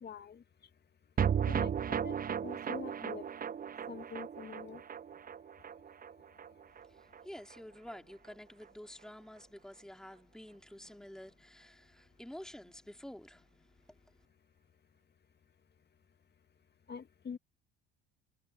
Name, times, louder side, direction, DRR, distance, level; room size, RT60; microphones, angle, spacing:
voice 1, 0.0-0.4 1.5-2.2 2.4-3.2 3.9-4.8 16.9-17.4, left 6 dB, 35° left, 2.4 m, -45 dB
sound 1, 1.2-7.6 7.9-8.0 8.2-8.3, right 8 dB, 30° right, 0.9 m, -36 dB
voice 2, 6.8-14.2, left 1 dB, ahead, 3.1 m, -50 dB
hypercardioid pair, 65°, 30 cm